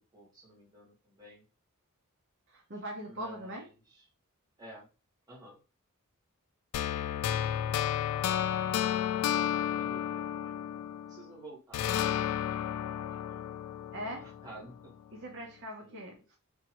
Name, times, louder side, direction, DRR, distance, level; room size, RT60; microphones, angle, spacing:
voice 1, 0.1-1.4 3.0-4.0 4.6-4.9 5.3-5.6 8.1-8.5 9.3-10.6 11.1-12.2 12.6-13.0 13.3-13.5 14.2-14.9 15.8-16.2, right 2 dB, 15° right, -4 dB, 1.3 m, -52 dB
voice 2, 2.5-3.7 13.9-14.3 15.1-16.2, right 1 dB, 55° right, 0 dB, 0.8 m, -41 dB
sound 1, 6.7-11.3 11.7-14.8, left 10 dB, 85° left, 0.3 m, -32 dB
3.6 x 2.6 x 3.0 m, 0.31 s
head